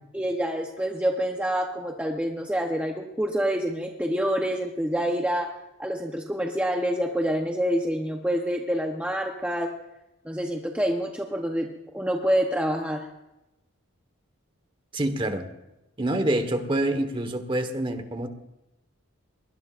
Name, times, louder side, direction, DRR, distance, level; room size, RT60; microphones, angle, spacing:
voice 1, 0.1-9.7 10.2-11.7 11.9-13.1, equal, 5° right, 2 dB, 0.8 m, -27 dB
voice 2, 14.9-15.5 16.0-18.3, right 1 dB, 25° right, 8 dB, 1.3 m, -26 dB
22.5 x 20.0 x 2.5 m, 0.95 s
head